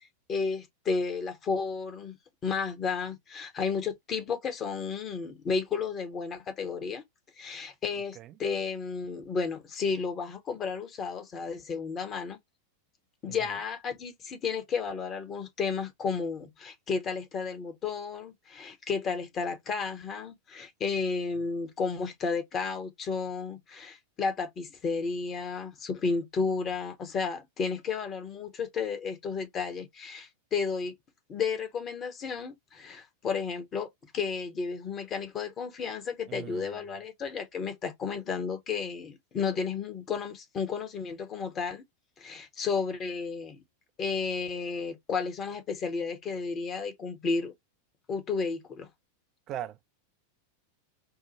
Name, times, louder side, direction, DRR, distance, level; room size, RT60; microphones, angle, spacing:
voice 1, 0.3-2.2 2.4-7.0 7.4-12.4 13.2-30.9 31.3-33.9 34.1-41.8 42.2-43.6 44.0-47.5 48.1-48.9, left 5 dB, 30° left, 0.9 m, -32 dB
voice 2, 36.3-36.8 49.5-49.8, right 11 dB, 35° right, 0.4 m, -39 dB
4.6 x 2.0 x 3.0 m
figure-of-eight pair, 90°, 0 cm